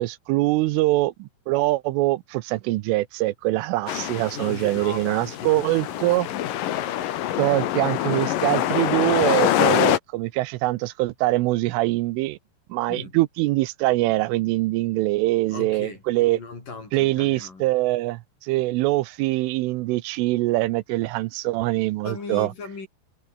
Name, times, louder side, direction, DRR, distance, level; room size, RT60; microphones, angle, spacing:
voice 1, 0.0-6.3 7.4-12.4 12.7-16.4 16.9-22.5, right 19 dB, 85° right, 3.3 m, -23 dB
sound 1, 3.9-10.0, left 12 dB, 65° left, 2.2 m, -25 dB
voice 2, 4.3-6.5 7.5-7.7 12.9-13.2 15.5-17.7 22.0-22.9, left 4 dB, 40° left, 7.7 m, -38 dB
omnidirectional pair, 5.7 m